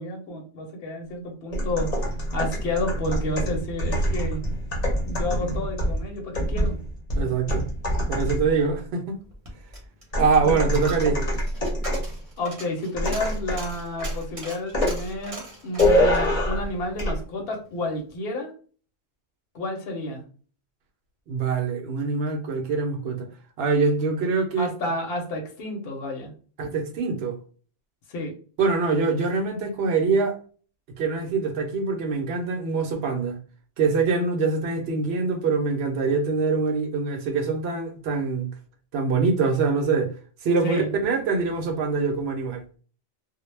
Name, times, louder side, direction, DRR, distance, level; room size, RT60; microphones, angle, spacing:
voice 1, 0.0-4.4 5.0-6.8 10.4-10.6 12.4-18.5 19.5-20.2 24.6-26.3 28.1-28.3 40.6-40.9, left 1 dB, 70° left, 0.9 m, -30 dB
sound 1, 1.5-8.6 10.1-12.1 13.0-13.7 14.0-14.2 14.7-15.0 15.8-16.7 17.0-17.2, equal, 45° left, 0.7 m, -25 dB
voice 2, 7.2-7.7 8.1-9.2 10.2-11.2 21.3-23.3 23.6-24.7 26.6-27.4 28.6-30.4 31.0-33.4 33.8-38.5 38.9-40.1 40.4-42.6, right 4 dB, 70° right, 0.8 m, -24 dB
Coin (dropping), 9.2-17.7 18.0-18.1, right 2 dB, 35° right, 0.8 m, -41 dB
2.1 x 2.0 x 3.1 m
omnidirectional pair, 1.1 m